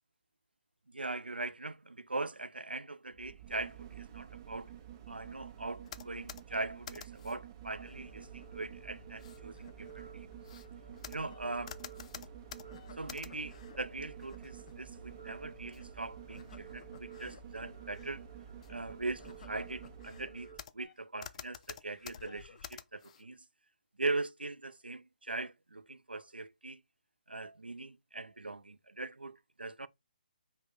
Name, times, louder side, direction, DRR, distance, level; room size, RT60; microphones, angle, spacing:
voice 1, 0.9-4.7 5.1-10.3 11.1-11.7 13.0-18.2 18.7-23.4 24.0-26.8 27.3-29.9, right 3 dB, 90° right, 0.4 m, -40 dB
sound 1, 3.1-20.5 20.8-20.9, right 11 dB, 35° right, 0.6 m, -51 dB
sound 2, 5.8-7.4 7.9-8.5 9.1-13.8 14.2-14.7 15.7-15.8 16.3-17.4 17.8-18.1 18.6-18.7 19.2-20.9 21.2-23.3, left 8 dB, 40° left, 0.3 m, -50 dB
sound 3, 7.6-20.6, right 3 dB, 5° right, 2.5 m, -54 dB
5.1 x 2.1 x 3.7 m
figure-of-eight pair, 140°, 5 cm